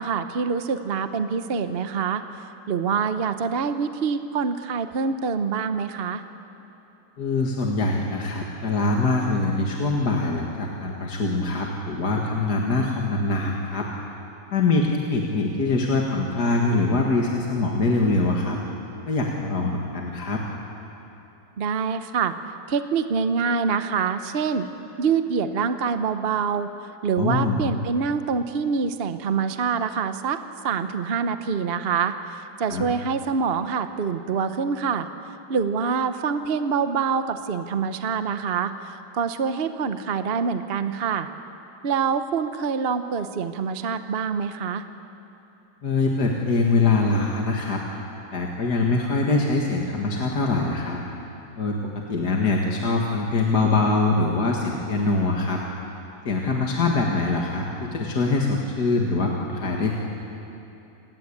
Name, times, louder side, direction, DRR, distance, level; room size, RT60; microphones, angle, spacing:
voice 1, 0.0-2.2 2.7-6.2 21.6-22.3 22.7-24.7 25.0-30.4 30.6-35.1 35.5-41.3 41.8-44.8, right 6 dB, 50° right, 9 dB, 0.7 m, -25 dB
voice 2, 7.2-13.9 14.5-18.6 19.1-20.4 27.2-27.6 32.7-32.8 45.8-47.8 48.3-51.0 51.6-55.6 56.3-59.9, left 3 dB, 55° left, -1 dB, 2.3 m, -23 dB
29.0 x 19.5 x 8.6 m, 2.9 s
omnidirectional pair, 2.2 m